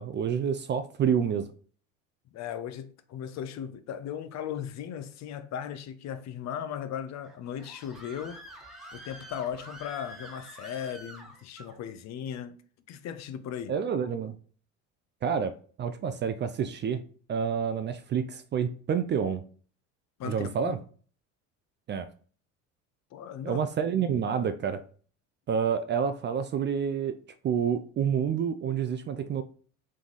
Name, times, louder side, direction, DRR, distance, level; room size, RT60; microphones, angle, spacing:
voice 1, 0.0-1.5 13.7-14.4 15.2-15.5 15.8-17.0 17.3-19.4 20.2-20.8 21.9-22.1 23.4-24.8 25.5-27.2 27.4-29.4, right 7 dB, 30° right, 0.4 m, -28 dB
voice 2, 2.3-8.4 8.9-12.6 12.9-13.8 20.2-20.7 23.1-23.6 24.0-24.2, left 9 dB, 45° left, 0.6 m, -37 dB
Screaming, 7.2-11.8, equal, ahead, 1.0 m, -47 dB
3.5 x 3.1 x 3.9 m
hypercardioid pair, 70°, 38 cm